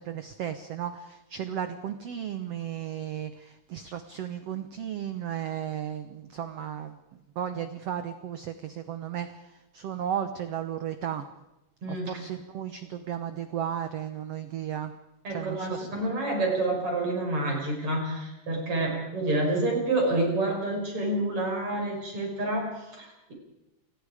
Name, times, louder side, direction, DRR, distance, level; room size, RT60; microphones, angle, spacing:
voice 1, 0.0-7.0 7.3-11.3 11.9-14.9 15.3-15.9, right 9 dB, 85° right, 10 dB, 1.3 m, -34 dB
voice 2, 11.8-12.2 15.2-23.3, right 2 dB, 35° right, 1 dB, 6.3 m, -28 dB
28.5 x 20.0 x 5.0 m, 0.97 s
omnidirectional pair, 4.2 m